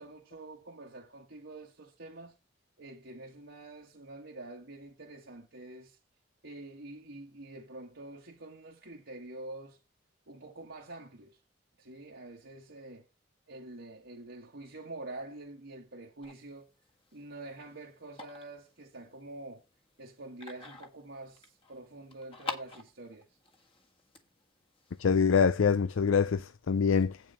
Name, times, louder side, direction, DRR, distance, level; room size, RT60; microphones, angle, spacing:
voice 1, 0.0-2.4 2.8-6.0 6.4-9.8 10.3-11.4 11.8-13.1 13.5-16.7 17.1-19.6 20.0-23.3, right 2 dB, 70° right, 1.6 m, -46 dB
sound 1, 16.2-25.6, left 4 dB, 30° left, 1.6 m, -48 dB
voice 2, 25.0-27.2, left 6 dB, 85° left, 0.5 m, -25 dB
8.8 x 6.3 x 5.1 m
head